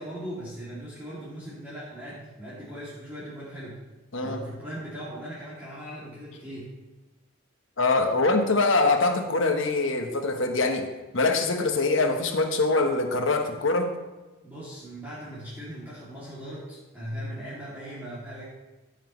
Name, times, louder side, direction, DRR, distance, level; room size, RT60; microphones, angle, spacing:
voice 1, 0.0-3.8 4.2-6.7 14.4-18.4, equal, 10° right, -10 dB, 2.5 m, -39 dB
voice 2, 7.8-10.9 11.1-14.0, left 3 dB, 65° left, 5 dB, 1.1 m, -23 dB
14.5 x 7.2 x 3.1 m, 1.2 s
head